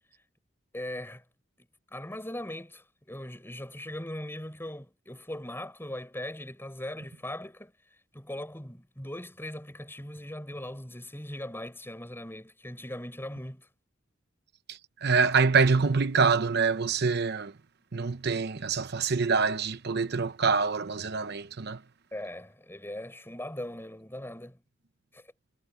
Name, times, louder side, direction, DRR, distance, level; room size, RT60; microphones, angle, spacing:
voice 1, 0.7-1.2 1.9-7.7 8.1-13.7 22.1-24.6 25.1-25.2, left 1 dB, 10° left, 6.5 m, -39 dB
voice 2, 14.7-17.5 17.9-21.8, right 5 dB, 60° right, 0.8 m, -25 dB
head